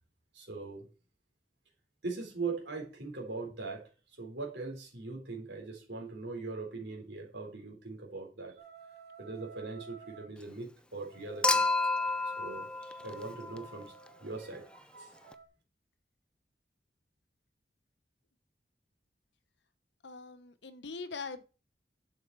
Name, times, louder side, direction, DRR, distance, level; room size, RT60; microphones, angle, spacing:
voice 1, 0.3-0.9 2.0-3.9 4.2-8.6 9.2-11.6 12.4-13.9 14.2-14.7 15.0-15.1, right 3 dB, 90° right, 3.8 m, -41 dB
sound 1, 8.6-10.3 11.0-15.5, right 6 dB, 65° right, 2.9 m, -54 dB
Human group actions / Chink clink / Liquid, 11.4-13.8 15.3-15.4, left 3 dB, 5° left, 0.5 m, -30 dB
voice 2, 20.0-21.4, left 4 dB, 85° left, 1.1 m, -42 dB
11.0 x 6.5 x 4.6 m
head